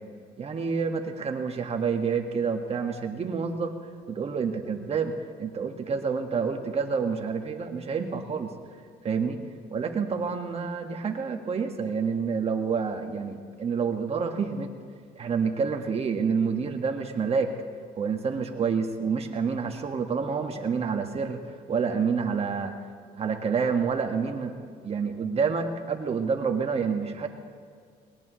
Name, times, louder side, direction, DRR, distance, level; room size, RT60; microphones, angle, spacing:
voice 1, 0.4-3.7 4.1-5.1 5.4-8.5 9.0-9.4 9.7-14.7 15.1-17.5 18.0-21.4 21.7-22.7 23.2-24.6 24.8-27.3, right 5 dB, 35° right, 4 dB, 1.7 m, -28 dB
20.5 x 18.5 x 3.1 m, 2.1 s
cardioid pair, 110°, 17 cm